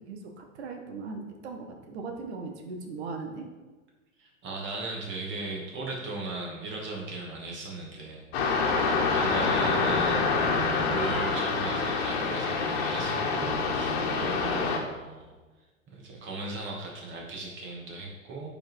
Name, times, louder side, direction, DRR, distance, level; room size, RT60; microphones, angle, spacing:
voice 1, 0.0-3.5, right 4 dB, 50° right, 3 dB, 1.7 m, -39 dB
voice 2, 4.2-15.4 15.9-18.5, right 3 dB, 30° right, -2 dB, 2.5 m, -38 dB
sound 1, 8.3-14.8, left 4 dB, 45° left, 1.7 m, -26 dB
8.3 x 5.8 x 4.7 m, 1.2 s
figure-of-eight pair, 100°, 41 cm